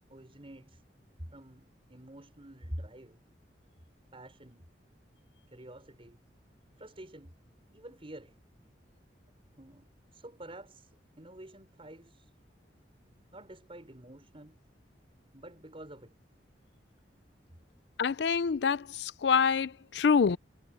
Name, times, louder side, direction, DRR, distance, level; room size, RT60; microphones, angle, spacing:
voice 1, 0.1-0.8 1.3-3.2 4.1-4.7 5.5-6.2 6.8-7.3 7.7-8.4 9.6-12.3 13.3-14.6 15.3-16.1, right 1 dB, 35° right, 5.2 m, -48 dB
voice 2, 18.0-20.4, left 6 dB, 70° left, 0.4 m, -26 dB
head